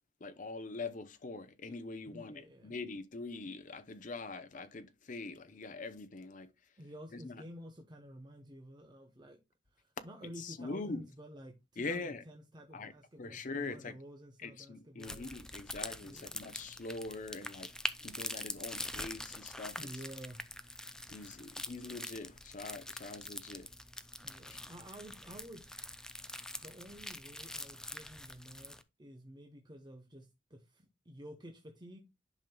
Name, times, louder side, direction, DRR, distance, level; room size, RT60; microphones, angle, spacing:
voice 1, 0.2-6.5 7.1-7.4 10.4-11.0 11.8-12.2 12.7-12.9 13.2-13.9 14.4-17.7 18.0-19.8 21.1-23.7 24.5-24.6, left 3 dB, 45° left, 0.7 m, -43 dB
voice 2, 2.1-2.7 6.8-9.4 9.7-15.3 16.0-16.5 19.8-20.4 24.2-25.8 26.6-32.0, equal, 25° right, 0.9 m, -51 dB
sound 1, 15.0-28.8, left 1 dB, 5° left, 0.4 m, -44 dB
10.5 x 5.3 x 2.3 m
head